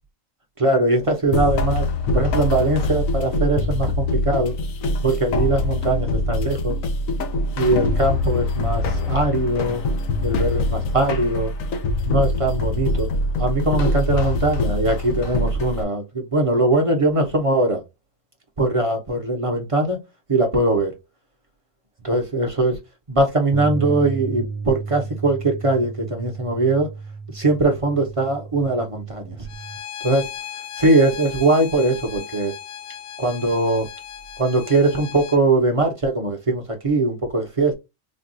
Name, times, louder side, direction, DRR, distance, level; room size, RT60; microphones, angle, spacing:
voice 1, 0.6-1.9 2.1-4.5 5.0-6.8 7.5-9.8 10.2-11.5 12.0-13.1 13.4-17.8 18.6-20.0 20.3-20.9 22.0-22.8 23.1-26.9 27.3-29.4 30.0-30.3 30.8-32.5 33.2-33.9 34.4-37.7, right 2 dB, 30° right, 0.7 m, -21 dB
sound 1, 1.3-15.8, left 2 dB, 85° left, 1.1 m, -23 dB
sound 2, 23.5-29.8, right 4 dB, 90° right, 1.0 m, -33 dB
Bowed string instrument, 29.5-35.4, left 10 dB, 60° left, 0.6 m, -36 dB
4.3 x 2.3 x 2.6 m
omnidirectional pair, 1.4 m